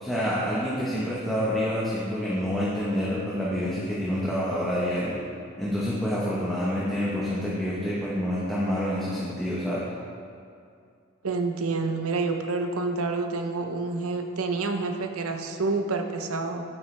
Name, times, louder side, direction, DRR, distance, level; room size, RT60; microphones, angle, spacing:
voice 1, 0.0-5.1 5.6-9.9, equal, ahead, -8 dB, 1.0 m, -27 dB
voice 2, 11.2-16.6, right 3 dB, 85° right, 5 dB, 0.7 m, -28 dB
9.1 x 8.7 x 3.3 m, 2.4 s
head